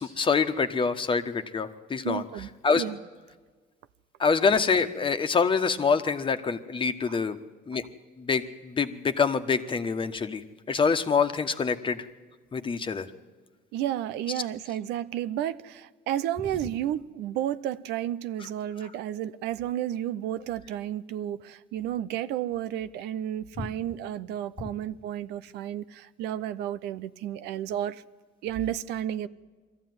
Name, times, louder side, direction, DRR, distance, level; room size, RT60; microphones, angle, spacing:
voice 1, 0.0-2.2 2.6-2.8 4.2-7.4 7.7-7.8 8.2-10.4 10.7-12.0 12.5-13.1 23.6-23.7 24.6-24.7, left 5 dB, 30° left, 1.3 m, -25 dB
voice 2, 2.0-2.5 2.7-3.0 7.1-7.2 13.7-28.0 28.4-29.3, right 11 dB, 85° right, 0.7 m, -32 dB
22.0 x 14.5 x 9.6 m
cardioid pair, 110°, 17 cm